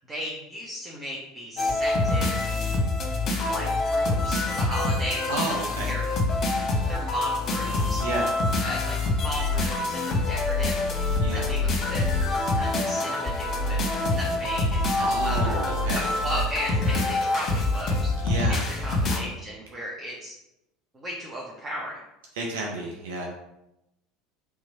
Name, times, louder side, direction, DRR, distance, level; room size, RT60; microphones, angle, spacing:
voice 1, 0.0-2.3 3.5-5.3 5.9-6.1 6.8-8.0 8.6-10.8 11.1-12.0 12.6-13.8 14.1-18.1 18.5-20.3 20.9-22.0, equal, 25° right, -4 dB, 1.0 m, -35 dB
sound 1, 1.6-19.2, left 2 dB, 40° left, 0.9 m, -25 dB
voice 2, 5.3-5.9 8.0-8.3 11.2-11.5 15.0-16.1 18.2-18.6 22.3-23.3, right 2 dB, 70° right, 0 dB, 0.6 m, -31 dB
3.6 x 3.1 x 4.1 m, 0.89 s
hypercardioid pair, 70°, 0 cm